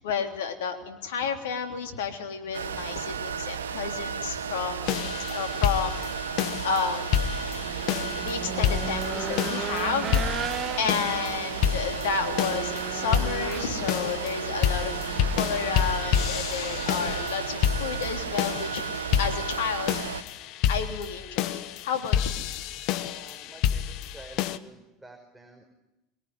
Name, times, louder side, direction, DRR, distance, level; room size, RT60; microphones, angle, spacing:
voice 1, 0.0-6.0 6.3-7.1 8.1-18.8 19.2-20.3 20.7-22.5, left 6 dB, 75° left, 5 dB, 3.4 m, -31 dB
sound 1, 2.5-20.2, right 6 dB, 85° right, 1.2 m, -33 dB
sound 2, 4.9-24.6, left 10 dB, 60° left, 1.2 m, -29 dB
Race car auto racing / Engine, 7.2-17.3, right 6 dB, 35° right, 2.4 m, -37 dB
voice 2, 23.0-25.6, right 2 dB, 10° right, 2 dB, 5.3 m, -50 dB
24.5 x 22.5 x 9.8 m, 0.96 s
hypercardioid pair, 75°, 0 cm